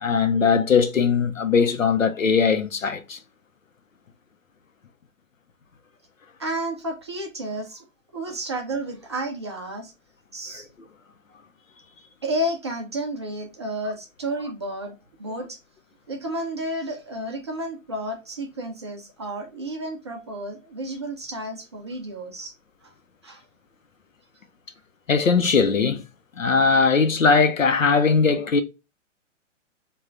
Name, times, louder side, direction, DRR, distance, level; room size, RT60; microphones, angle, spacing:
voice 1, 0.0-3.2 25.1-26.0 26.4-28.6, left 5 dB, 85° left, 0.7 m, -20 dB
voice 2, 6.4-7.8 8.1-9.9 10.3-10.7 12.2-14.9 15.2-15.6 16.1-22.5 23.2-23.4, right 1 dB, 25° right, 0.3 m, -31 dB
3.5 x 2.4 x 3.1 m
figure-of-eight pair, 125°, 38 cm